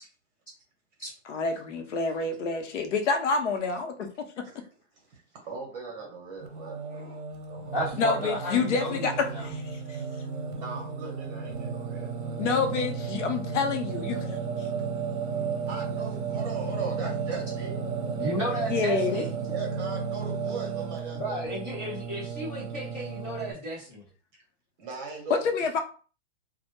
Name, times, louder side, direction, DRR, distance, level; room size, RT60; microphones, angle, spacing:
voice 1, 1.3-4.4 8.0-10.0 12.4-14.2 18.7-19.2 25.4-25.8, left 4 dB, 80° left, 4 dB, 0.7 m, -28 dB
voice 2, 4.9-7.2 7.5-8.1 10.2-12.4 15.7-17.7 19.4-21.4 24.8-25.5, right 4 dB, 35° right, 0 dB, 1.0 m, -39 dB
Singing, 6.4-23.5, right 6 dB, 65° right, 0.7 m, -33 dB
voice 3, 7.7-9.5 18.2-19.3 21.1-24.0, equal, 20° left, -8 dB, 0.4 m, -33 dB
2.1 x 2.1 x 2.9 m, 0.39 s
hypercardioid pair, 165°, 36 cm